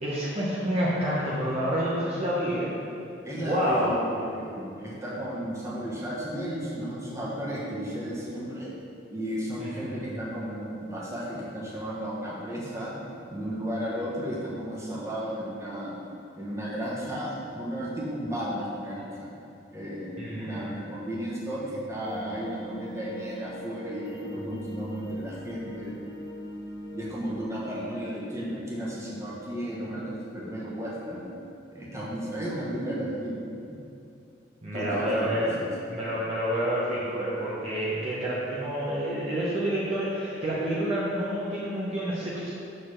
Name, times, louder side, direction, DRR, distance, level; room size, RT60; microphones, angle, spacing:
voice 1, 0.0-2.7 3.4-4.0 9.6-9.9 20.2-20.7 34.6-35.6 35.9-42.5, equal, 35° right, -8 dB, 1.0 m, -28 dB
voice 2, 3.2-8.7 9.1-12.9 13.3-15.9 16.3-19.3 19.7-26.0 26.9-31.2 31.7-33.4 34.7-35.7, equal, 15° right, -6 dB, 1.3 m, -34 dB
sound 1, 22.0-27.3, left 1 dB, 25° left, 1.1 m, -42 dB
6.5 x 4.0 x 6.5 m, 2.7 s
head